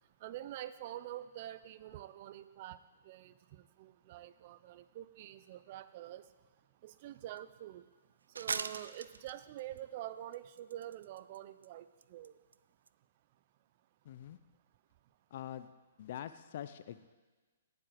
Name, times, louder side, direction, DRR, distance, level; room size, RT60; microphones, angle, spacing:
voice 1, 0.2-2.8 3.0-6.2 6.8-7.8 8.4-12.3, right 13 dB, 45° right, 14 dB, 0.7 m, -46 dB
sound 1, 6.9-7.0 7.4-7.5 8.4-9.8 10.3-11.4 11.6-11.7 12.0-12.3 12.5-12.6 12.9-13.0, right 5 dB, 85° right, 0.5 m, -40 dB
voice 2, 14.0-14.4 15.3-15.7 16.0-17.1, left 11 dB, 55° left, 12 dB, 0.7 m, -44 dB
18.0 x 7.9 x 7.7 m, 1.3 s
hypercardioid pair, 135°, 0 cm